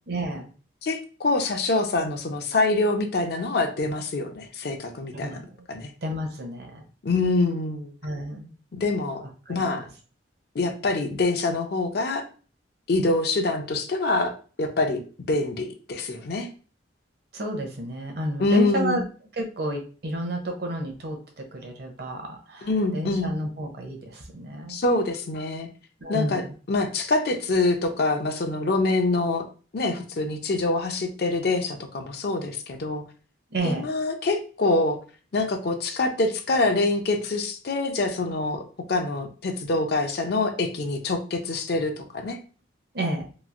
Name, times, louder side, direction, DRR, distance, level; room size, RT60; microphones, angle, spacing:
voice 1, 0.1-0.5 5.1-5.4 6.0-6.8 8.0-8.5 9.2-9.8 17.3-19.0 19.3-24.8 26.0-26.5 33.5-33.9 42.9-43.3, right 1 dB, 55° right, 3 dB, 0.7 m, -31 dB
voice 2, 0.8-5.4 5.7-5.9 7.0-7.9 8.7-9.2 9.5-9.9 10.5-12.2 12.9-14.3 14.6-15.0 15.3-16.5 18.4-19.0 22.6-23.3 24.7-25.7 26.1-26.4 26.7-29.5 29.7-33.0 33.6-35.0 35.3-38.6 38.9-42.4, left 2 dB, 55° left, 6 dB, 0.5 m, -25 dB
3.0 x 2.4 x 2.4 m, 0.37 s
head